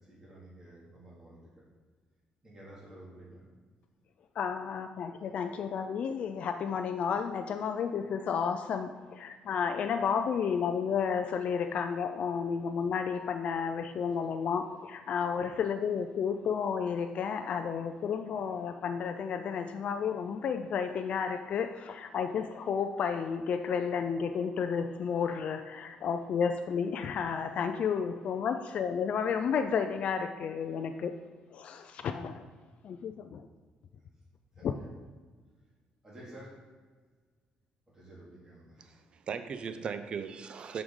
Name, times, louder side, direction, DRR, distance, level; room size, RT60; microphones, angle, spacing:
voice 1, 0.0-1.6 2.4-3.4 34.6-34.9 36.0-36.5 37.9-39.0, right 1 dB, 15° right, -7 dB, 2.2 m, -51 dB
voice 2, 4.4-31.1 31.5-32.5 32.8-33.5 34.6-34.7, left 6 dB, 45° left, 7 dB, 0.4 m, -32 dB
voice 3, 38.8-40.8, right 6 dB, 35° right, 9 dB, 0.5 m, -38 dB
11.5 x 4.8 x 3.7 m, 1.4 s
cardioid pair, 175°, 3 cm